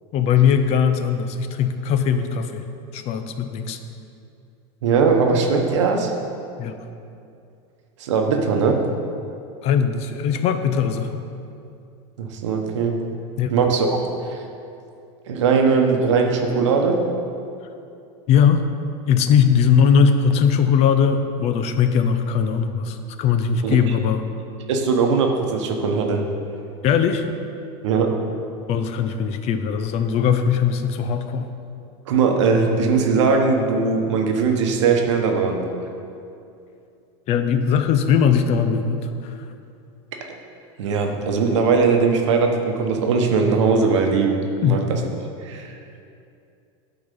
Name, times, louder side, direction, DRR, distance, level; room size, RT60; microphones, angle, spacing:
voice 1, 0.1-2.7 2.9-3.8 5.7-5.8 6.6-6.8 9.6-11.2 13.4-13.5 18.3-18.6 19.1-24.2 26.8-27.3 28.7-31.5 37.3-39.5 44.6-44.9, left 7 dB, 45° left, 9 dB, 0.6 m, -20 dB
voice 2, 4.8-6.1 8.0-8.8 12.2-13.0 13.5-14.4 15.3-17.0 23.6-23.8 24.7-26.2 27.8-28.1 32.1-35.6 40.3-40.4 40.8-44.4 44.6-45.0 45.4-45.8, right 5 dB, 90° right, 3 dB, 1.0 m, -20 dB
10.0 x 4.0 x 5.4 m, 2.6 s
supercardioid pair, 125°, 15 cm